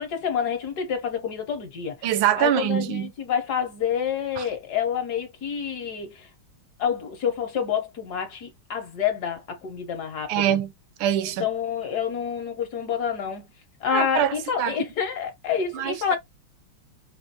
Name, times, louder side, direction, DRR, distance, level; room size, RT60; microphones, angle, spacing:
voice 1, 0.0-2.1 2.4-6.3 6.8-10.3 11.4-13.5 13.8-16.2, left 7 dB, 60° left, 1.3 m, -28 dB
voice 2, 2.0-3.1 4.4-4.5 10.3-10.7 11.0-11.5 13.9-14.8 15.7-16.2, right 10 dB, 80° right, 1.3 m, -24 dB
5.0 x 2.5 x 2.7 m
omnidirectional pair, 2.3 m